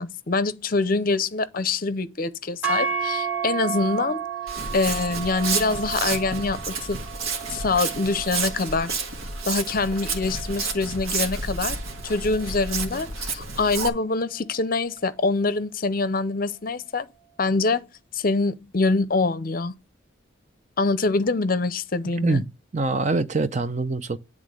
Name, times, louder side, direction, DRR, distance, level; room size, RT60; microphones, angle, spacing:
voice 1, 0.0-4.2 4.7-7.0 7.5-9.0 9.5-11.8 12.0-17.1 17.4-19.7 20.8-22.4, left 3 dB, 45° left, 0.6 m, -25 dB
sound 1, 2.6-10.9, right 7 dB, 10° right, 1.0 m, -32 dB
Walk footsteps, 4.5-13.9, right 4 dB, 85° right, 1.6 m, -30 dB
voice 2, 22.2-24.2, right 3 dB, 35° right, 0.5 m, -25 dB
10.0 x 3.6 x 6.5 m
head